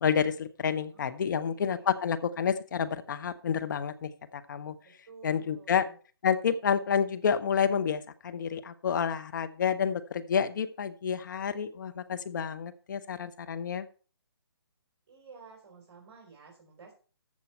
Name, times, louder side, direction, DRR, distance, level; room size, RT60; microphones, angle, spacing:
voice 1, 0.0-4.7 5.2-5.9 6.2-13.9, left 7 dB, 50° left, 10 dB, 1.0 m, -29 dB
voice 2, 0.9-2.0 4.8-6.0 15.1-16.9, right 5 dB, 35° right, -2 dB, 4.1 m, -53 dB
14.0 x 7.3 x 4.4 m, 0.39 s
figure-of-eight pair, 145°, 13 cm